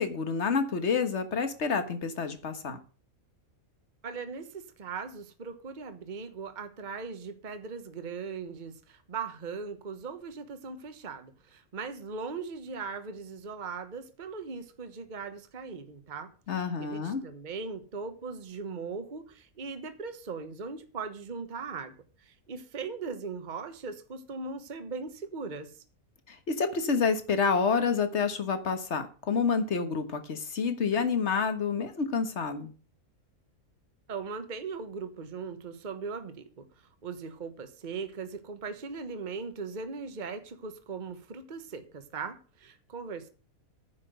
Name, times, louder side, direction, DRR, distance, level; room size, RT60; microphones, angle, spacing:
voice 1, 0.0-2.8 16.5-17.2 26.3-32.7, left 5 dB, 50° left, 1.7 m, -28 dB
voice 2, 4.0-16.3 16.5-25.8 34.1-43.3, right 5 dB, 35° right, 1.2 m, -39 dB
9.9 x 6.0 x 7.9 m
omnidirectional pair, 1.5 m